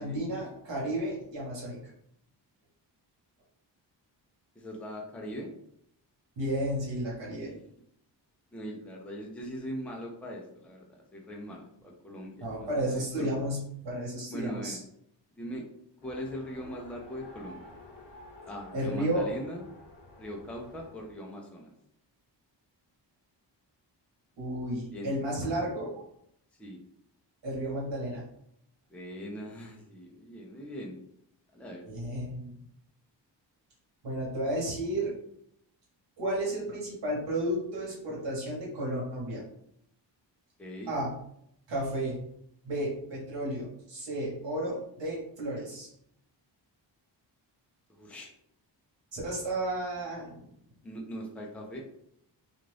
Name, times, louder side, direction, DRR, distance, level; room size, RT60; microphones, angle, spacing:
voice 1, 0.0-1.9 6.4-7.5 12.4-14.8 18.7-19.3 24.4-26.0 27.4-28.2 31.9-32.5 34.0-35.1 36.2-39.4 40.9-41.1 41.7-42.2 42.6-45.9 49.1-50.4, right 1 dB, 75° right, -4 dB, 1.3 m, -32 dB
voice 2, 4.6-5.5 7.3-7.6 8.5-13.4 14.3-14.8 15.4-15.6 16.0-17.6 18.4-19.6 20.2-21.7 24.9-25.1 26.6-26.8 28.9-31.0 31.5-31.8 40.6-40.9 47.9-48.3 50.8-51.8, equal, 5° left, 0 dB, 0.4 m, -41 dB
Race car auto racing, 16.0-21.2, left 2 dB, 70° left, 0.9 m, -51 dB
2.5 x 2.4 x 3.2 m, 0.72 s
wide cardioid pair, 110°, 43 cm